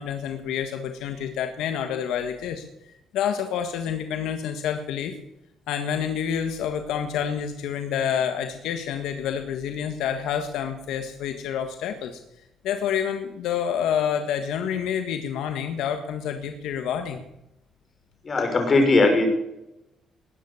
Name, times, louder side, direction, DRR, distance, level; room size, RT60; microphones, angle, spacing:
voice 1, 0.0-2.6 3.1-5.2 5.7-12.2 12.6-17.2, left 8 dB, 90° left, 6 dB, 1.6 m, -28 dB
voice 2, 18.2-19.3, left 3 dB, 40° left, 4 dB, 5.9 m, -19 dB
20.0 x 9.6 x 7.1 m, 0.87 s
cardioid pair, 90°, 0 cm